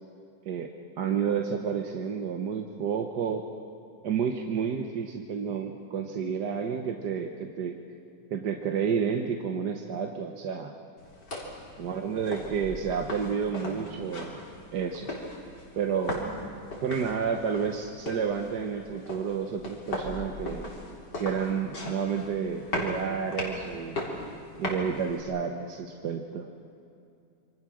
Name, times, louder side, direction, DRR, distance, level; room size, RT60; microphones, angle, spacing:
voice 1, 0.5-3.5 4.0-7.8 8.3-10.8 11.8-14.4 14.7-15.1 15.8-16.3 16.8-20.6 21.2-24.1 24.6-26.5, right 6 dB, 70° right, 3 dB, 1.7 m, -30 dB
sound 1, 11.0-25.2, left 1 dB, 70° left, 4.3 m, -38 dB
27.5 x 25.0 x 6.3 m, 2.6 s
omnidirectional pair, 1.9 m